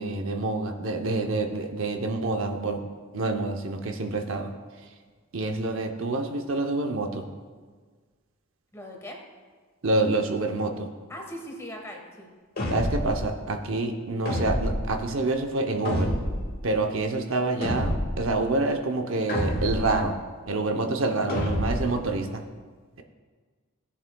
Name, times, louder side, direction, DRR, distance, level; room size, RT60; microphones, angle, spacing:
voice 1, 0.0-2.8 3.1-4.5 5.3-7.2 9.8-10.9 12.7-16.1 16.6-20.1 20.5-22.4, right 2 dB, 65° right, 4 dB, 0.7 m, -27 dB
voice 2, 8.7-9.2 11.1-12.3, equal, 15° left, 1 dB, 1.3 m, -39 dB
sound 1, 12.6-13.2 14.3-14.9 15.8-16.5 17.6-18.2 19.3-20.0 21.3-21.9, equal, 45° left, 1.8 m, -28 dB
16.5 x 7.3 x 2.3 m, 1.5 s
head